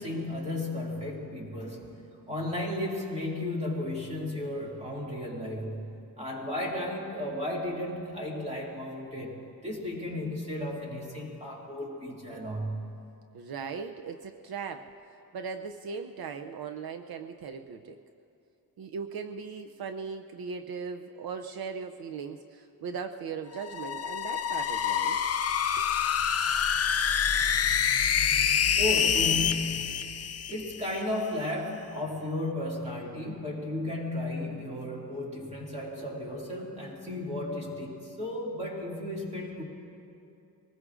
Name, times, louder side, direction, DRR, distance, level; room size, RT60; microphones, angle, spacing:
voice 1, 0.0-2.0 2.3-12.9 28.8-39.6, left 1 dB, 20° right, -3 dB, 2.4 m, -34 dB
voice 2, 13.3-14.9 15.3-18.0 18.8-25.2 25.8-25.9, right 5 dB, 70° right, 6 dB, 0.6 m, -38 dB
sound 1, 23.5-31.0, left 8 dB, 40° left, 0.5 m, -27 dB
24.0 x 19.5 x 2.5 m, 2.7 s
wide cardioid pair, 170°, 37 cm